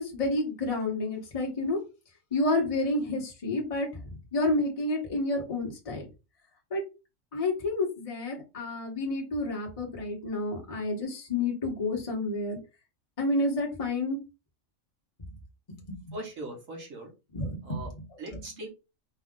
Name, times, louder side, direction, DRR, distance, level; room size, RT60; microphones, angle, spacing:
voice 1, 0.0-1.8 2.3-6.0 6.7-6.8 7.3-12.6 13.2-14.2 15.9-16.1 17.3-17.8, left 2 dB, 25° left, -1 dB, 1.2 m, -30 dB
voice 2, 16.1-17.1 17.6-17.9 18.2-18.7, right 2 dB, 70° right, 1 dB, 1.8 m, -40 dB
4.5 x 2.5 x 3.7 m, 0.28 s
omnidirectional pair, 1.4 m